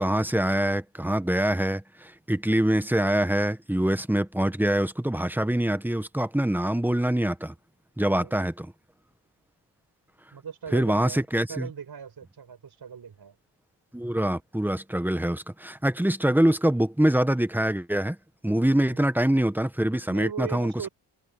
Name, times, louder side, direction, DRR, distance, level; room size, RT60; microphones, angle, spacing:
voice 1, 0.0-7.5 8.0-8.7 10.7-11.7 13.9-18.2 18.4-20.9, right 1 dB, 5° right, 1.0 m, -24 dB
voice 2, 10.3-11.2 11.5-13.4 20.1-20.9, right 7 dB, 60° right, 6.3 m, -39 dB
cardioid pair, 90°, 44 cm